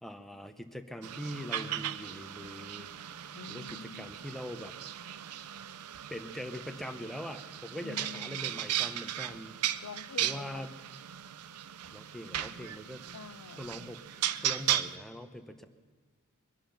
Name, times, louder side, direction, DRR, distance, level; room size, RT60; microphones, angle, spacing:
voice 1, 0.0-2.9 3.5-4.7 6.1-9.6 10.2-10.7 11.9-13.0 13.6-15.7, equal, ahead, 6 dB, 0.8 m, -42 dB
sound 1, 1.0-15.0, right 11 dB, 85° right, 0.5 m, -37 dB
voice 2, 3.3-4.1 7.8-8.6 9.8-10.7 13.1-13.7, left 5 dB, 80° left, 15 dB, 0.6 m, -47 dB
22.5 x 10.5 x 5.9 m, 1.5 s
head